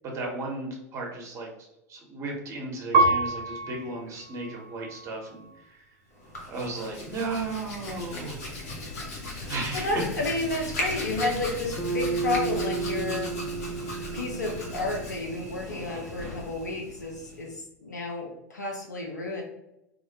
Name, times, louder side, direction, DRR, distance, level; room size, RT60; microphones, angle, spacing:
voice 1, 0.0-1.5 1.9-5.8 6.5-8.4 9.5-9.9, right 3 dB, 35° right, 0 dB, 0.9 m, -35 dB
Piano, 2.9-5.7 6.3-7.0, right 2 dB, 65° right, 0.4 m, -28 dB
Hands, 6.1-17.6, left 1 dB, 65° left, 0.8 m, -37 dB
voice 2, 9.7-13.4 14.1-17.5 17.8-19.4, left 2 dB, 85° left, 1 dB, 0.4 m, -31 dB
Bass guitar, 11.8-16.1, right 5 dB, 5° right, 0.5 m, -33 dB
2.4 x 2.1 x 2.7 m, 0.89 s
figure-of-eight pair, 85°, 9 cm